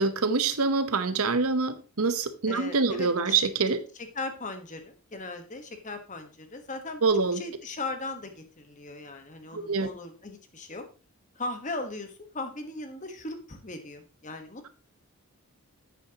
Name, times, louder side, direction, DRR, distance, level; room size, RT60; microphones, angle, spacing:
voice 1, 0.0-3.8 7.0-7.4 9.5-9.9, right 4 dB, 80° right, 0.9 m, -25 dB
voice 2, 2.5-3.3 3.9-7.0 7.3-10.8 11.3-14.6, left 2 dB, 35° left, 1.2 m, -38 dB
10.0 x 8.4 x 2.9 m
head